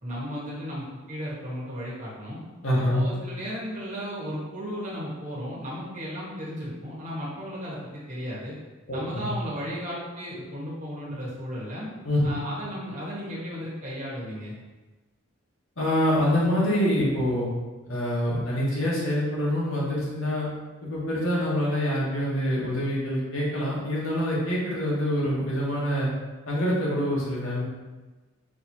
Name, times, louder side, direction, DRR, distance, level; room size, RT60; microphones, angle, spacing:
voice 1, 0.0-2.4 2.8-8.6 8.9-11.9 12.2-14.5, equal, 40° right, -6 dB, 1.3 m, -35 dB
voice 2, 2.6-3.0 8.9-9.3 12.0-12.3 15.8-17.5 17.9-20.5 20.8-26.1 26.5-27.6, equal, 80° left, -6 dB, 1.4 m, -25 dB
5.2 x 3.0 x 2.7 m, 1.2 s
head